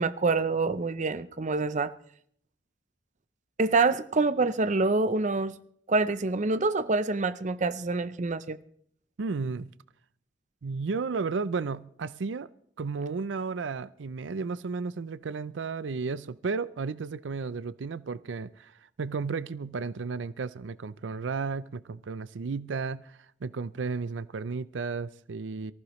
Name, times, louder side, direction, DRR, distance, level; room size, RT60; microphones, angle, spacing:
voice 1, 0.0-1.9 3.6-5.5 5.9-8.6, right 3 dB, 40° right, 0.7 m, -26 dB
voice 2, 9.2-9.7 10.6-12.5 12.8-18.7 19.0-25.7, right 4 dB, 90° right, 0.5 m, -33 dB
24.0 x 14.5 x 3.1 m
head